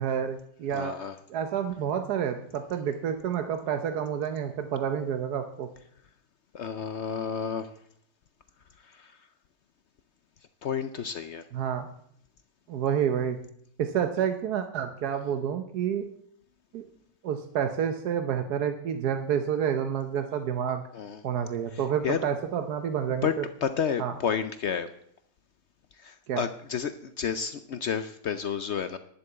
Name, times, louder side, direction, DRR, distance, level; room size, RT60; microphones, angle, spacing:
voice 1, 0.0-0.9 1.3-5.7 11.5-11.9 12.7-13.4 13.8-16.1 16.7-16.9 17.2-20.8 21.2-23.3 24.0-24.1 26.3-26.4, right 8 dB, 70° right, 7 dB, 1.3 m, -29 dB
voice 2, 0.7-1.2 6.5-7.7 8.8-9.2 10.6-11.5 20.9-21.2 21.7-22.2 23.2-23.3 23.6-24.9 26.0-29.0, left 7 dB, 65° left, 10 dB, 0.6 m, -31 dB
11.0 x 6.9 x 8.0 m, 0.69 s
omnidirectional pair, 1.8 m